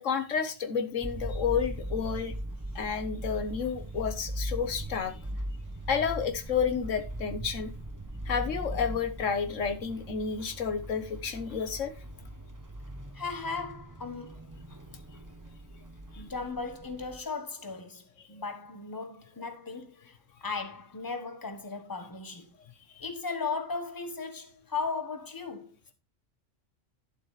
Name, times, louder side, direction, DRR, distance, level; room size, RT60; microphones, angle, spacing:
voice 1, 0.0-2.3 2.7-5.1 5.9-7.7 8.2-11.9 23.0-23.1, left 6 dB, 90° left, 1.5 m, -30 dB
sound 1, 1.0-17.2, right 1 dB, 15° right, 1.0 m, -39 dB
voice 2, 13.1-14.6 16.2-22.5 23.0-25.7, left 4 dB, 20° left, 1.3 m, -37 dB
11.5 x 7.7 x 3.2 m
omnidirectional pair, 1.2 m